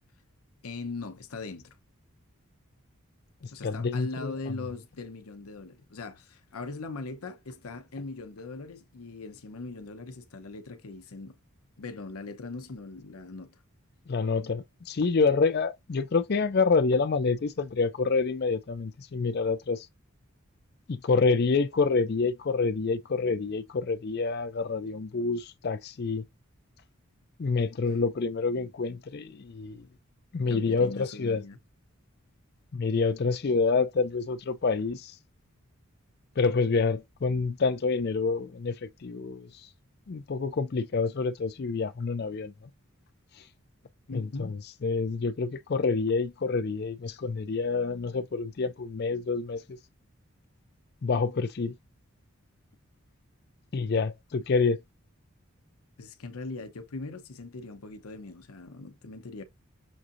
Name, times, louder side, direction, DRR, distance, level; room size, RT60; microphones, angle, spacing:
voice 1, 0.6-1.8 3.5-11.4 11.8-13.6 30.5-31.6 44.1-44.6 56.0-59.4, left 3 dB, 80° left, 0.8 m, -40 dB
voice 2, 3.4-4.3 14.1-19.9 20.9-26.2 27.4-29.9 30.3-31.4 32.7-35.1 36.4-39.5 40.1-42.5 44.1-44.6 44.8-49.8 51.0-51.7 53.7-54.8, left 4 dB, 45° left, 0.4 m, -27 dB
6.3 x 2.5 x 2.7 m
head